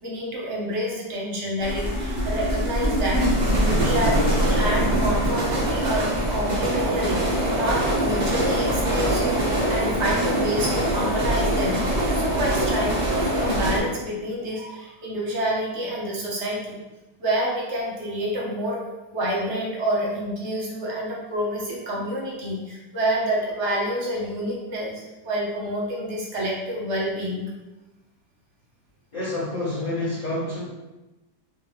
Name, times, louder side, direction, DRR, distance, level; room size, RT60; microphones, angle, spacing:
voice 1, 0.0-3.3 3.5-11.8 12.2-16.8 17.2-18.8 19.1-27.4, right 1 dB, 50° right, -3 dB, 0.9 m, -28 dB
sound 1, 1.6-13.8, right 1 dB, 80° right, 0.4 m, -23 dB
voice 2, 29.1-30.6, left 2 dB, 30° left, -11 dB, 0.9 m, -28 dB
3.7 x 2.6 x 3.2 m, 1.1 s
omnidirectional pair, 1.8 m